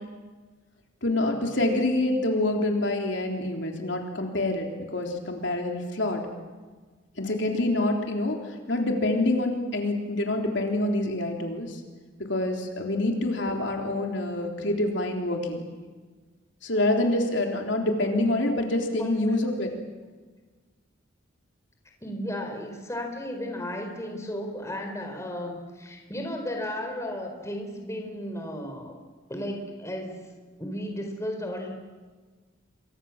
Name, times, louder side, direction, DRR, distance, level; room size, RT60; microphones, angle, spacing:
voice 1, 1.0-4.7 4.9-6.2 7.2-11.8 12.3-15.6 16.6-19.7, left 1 dB, 65° left, 2 dB, 3.7 m, -26 dB
voice 2, 22.0-29.0 29.3-31.7, left 1 dB, 15° left, 3 dB, 4.5 m, -34 dB
28.5 x 25.0 x 7.4 m, 1.4 s
head